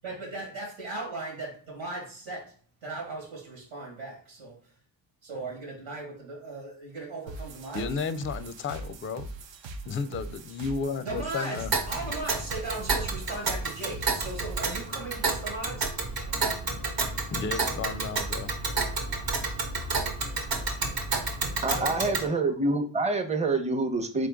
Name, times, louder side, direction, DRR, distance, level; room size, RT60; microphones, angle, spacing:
voice 1, 0.0-2.5 2.8-4.6 5.2-7.9 11.0-15.9 21.7-22.3, right 2 dB, 85° right, -1 dB, 1.8 m, -37 dB
sound 1, 7.3-14.9, right 2 dB, 70° right, 0.7 m, -41 dB
voice 2, 7.7-9.3 9.9-11.7 17.3-18.5, left 5 dB, 30° left, 12 dB, 0.4 m, -33 dB
Tick, 11.7-22.3, right 3 dB, 50° right, 1.1 m, -30 dB
voice 3, 21.6-24.3, right 3 dB, 15° right, 5 dB, 0.8 m, -27 dB
3.7 x 3.2 x 3.5 m, 0.43 s
supercardioid pair, 55°, 47 cm